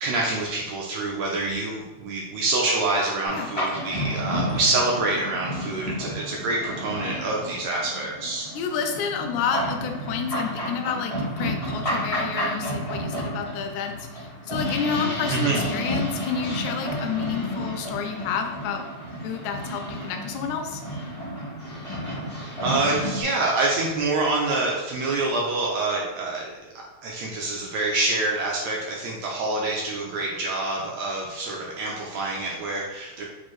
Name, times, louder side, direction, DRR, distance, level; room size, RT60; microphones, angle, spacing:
voice 1, 0.0-8.5 15.3-15.6 22.6-33.2, right 2 dB, 80° right, -2 dB, 1.5 m, -26 dB
sound 1, 3.2-23.2, equal, 45° left, 0.4 m, -31 dB
voice 2, 8.6-18.9 19.2-20.8, left 7 dB, 80° left, 5 dB, 1.8 m, -30 dB
6.1 x 2.5 x 3.0 m, 1.1 s
omnidirectional pair, 3.5 m